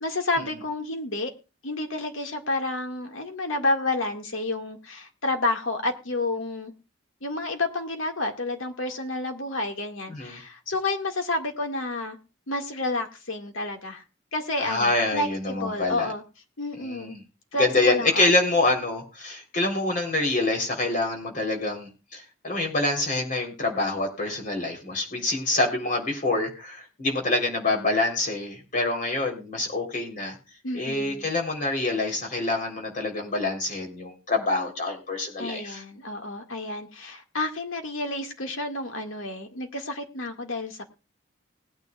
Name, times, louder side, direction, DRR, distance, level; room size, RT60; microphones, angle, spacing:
voice 1, 0.0-1.3 1.6-6.7 7.2-12.2 12.5-14.0 14.3-16.2 16.6-17.2 17.5-18.3 30.6-31.3 35.4-40.8, left 2 dB, 85° left, 4 dB, 2.0 m, -30 dB
voice 2, 14.6-16.1 16.8-17.2 17.6-30.4 30.7-35.8, left 2 dB, 40° left, 2 dB, 3.6 m, -26 dB
20.0 x 9.3 x 2.4 m, 0.31 s
head